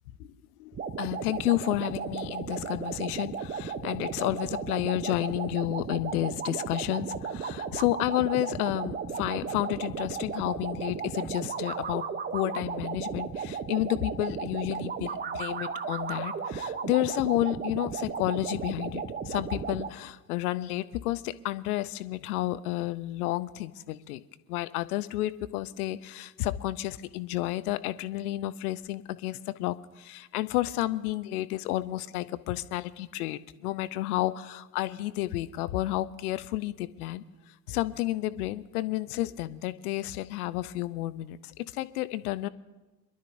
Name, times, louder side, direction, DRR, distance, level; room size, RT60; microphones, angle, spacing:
voice 1, 0.6-24.2 24.5-37.2 37.7-42.5, left 16 dB, 60° left, 15 dB, 0.8 m, -31 dB
sound 1, 0.7-19.9, right 6 dB, 20° right, 0.9 m, -35 dB
26.0 x 12.0 x 2.7 m, 1.1 s
figure-of-eight pair, 70°, 50 cm